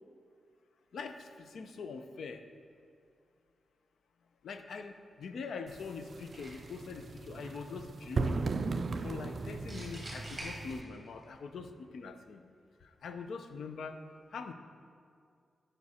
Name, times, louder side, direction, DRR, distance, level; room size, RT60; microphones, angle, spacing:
voice 1, 0.9-2.4 4.4-8.6 9.0-12.4 12.8-14.0 14.3-14.5, left 5 dB, 85° left, 8 dB, 0.5 m, -43 dB
sound 1, 5.7-10.8, right 4 dB, 45° right, 0.3 m, -37 dB
sound 2, 6.3-6.9 9.7-11.2, right 1 dB, 10° right, 1.8 m, -45 dB
9.5 x 5.1 x 4.2 m, 2.3 s
wide cardioid pair, 155°, 0 cm